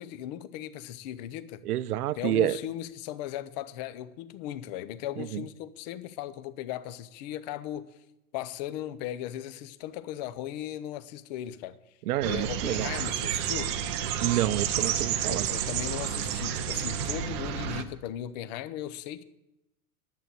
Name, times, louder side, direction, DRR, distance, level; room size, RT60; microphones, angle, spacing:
voice 1, 0.0-1.6 2.2-7.9 8.3-11.8 12.2-13.7 15.3-19.2, left 12 dB, 30° left, 0.6 m, -37 dB
voice 2, 1.6-2.6 5.2-5.4 12.1-12.9 14.2-15.5, right 14 dB, 80° right, 0.7 m, -28 dB
sound 1, 12.2-17.8, right 9 dB, 20° right, 0.4 m, -30 dB
11.0 x 8.5 x 7.6 m
supercardioid pair, 155°, 44 cm